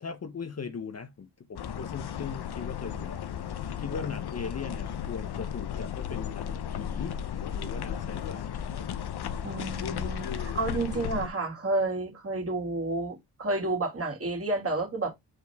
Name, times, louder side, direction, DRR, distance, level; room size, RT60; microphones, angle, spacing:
voice 1, 0.0-3.2 3.8-7.2 7.5-8.5, left 5 dB, 35° left, 0.8 m, -39 dB
sound 1, 1.6-11.3, left 8 dB, 65° left, 0.9 m, -34 dB
voice 2, 9.4-15.1, right 2 dB, 35° right, 2.6 m, -30 dB
7.5 x 4.7 x 3.5 m
wide cardioid pair, 110°, 42 cm